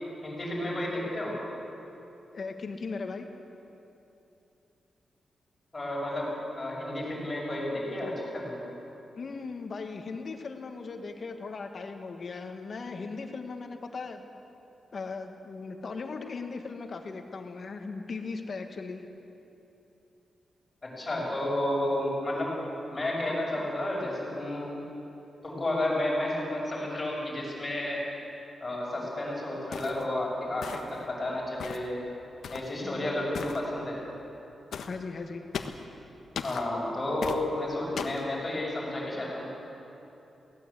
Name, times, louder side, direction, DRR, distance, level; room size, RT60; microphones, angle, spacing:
voice 1, 0.2-1.4 5.7-8.6 20.8-22.5 22.9-24.8 25.4-28.0 28.6-32.0 32.5-34.0 36.4-39.5, left 1 dB, 20° left, -3 dB, 6.6 m, -31 dB
voice 2, 2.3-3.3 9.1-14.2 14.9-19.0 32.8-33.1 34.9-35.4, left 4 dB, 45° left, 5 dB, 1.9 m, -38 dB
sound 1, 29.7-30.0 30.6-31.0 31.6-31.9 32.4-32.7 33.3-33.6 34.7-35.0 35.5-35.8 36.4-36.7 37.2-37.4 38.0-38.2, left 6 dB, 75° left, 1.3 m, -37 dB
23.0 x 17.5 x 8.5 m, 3.0 s
wide cardioid pair, 140°, 0 cm